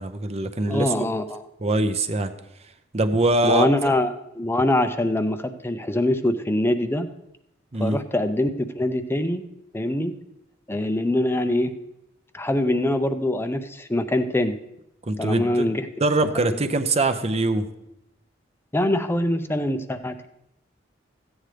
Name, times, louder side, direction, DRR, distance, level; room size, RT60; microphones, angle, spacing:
voice 1, 0.0-1.1 1.6-2.3 2.9-3.7 7.7-8.0 15.1-15.7 16.0-17.7, right 2 dB, 35° right, 9 dB, 0.6 m, -23 dB
voice 2, 0.7-1.5 3.4-7.1 7.8-9.4 9.7-10.1 10.7-11.7 12.3-14.6 15.2-15.9 16.3-16.6 18.7-20.3, left 1 dB, 10° left, 9 dB, 0.5 m, -24 dB
14.5 x 9.0 x 3.3 m, 0.83 s
head